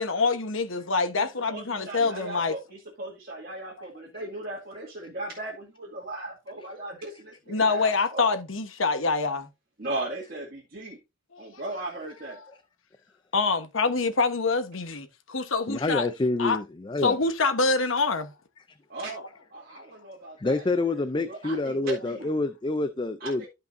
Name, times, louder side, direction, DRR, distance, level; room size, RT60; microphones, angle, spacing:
voice 1, 0.0-2.5 7.5-9.5 11.3-11.5 13.3-16.1 16.4-16.6 17.0-18.3, left 4 dB, 85° left, 1.2 m, -25 dB
voice 2, 1.2-8.2 9.8-11.0 11.4-12.4 18.9-19.3 19.5-22.3 23.2-23.5, right 2 dB, 50° right, 2.2 m, -37 dB
voice 3, 15.7-17.2 20.4-23.5, left 2 dB, 25° left, 0.4 m, -27 dB
13.0 x 5.4 x 2.7 m
head